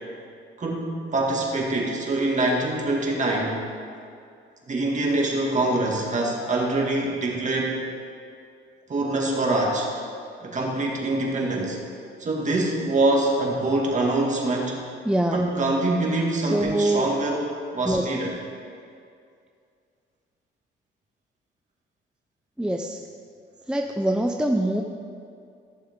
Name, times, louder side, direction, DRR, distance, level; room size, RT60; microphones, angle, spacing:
voice 1, 0.6-3.6 4.7-7.8 8.9-9.9 10.4-11.8 12.2-14.8 15.3-17.5 17.7-18.4, right 2 dB, 40° right, -2 dB, 2.2 m, -24 dB
voice 2, 15.1-15.4 16.4-17.1 17.8-18.1 22.6-23.0 23.7-24.8, right 1 dB, 5° right, 3 dB, 0.5 m, -24 dB
15.0 x 6.9 x 3.7 m, 2.3 s
cardioid pair, 90°, 20 cm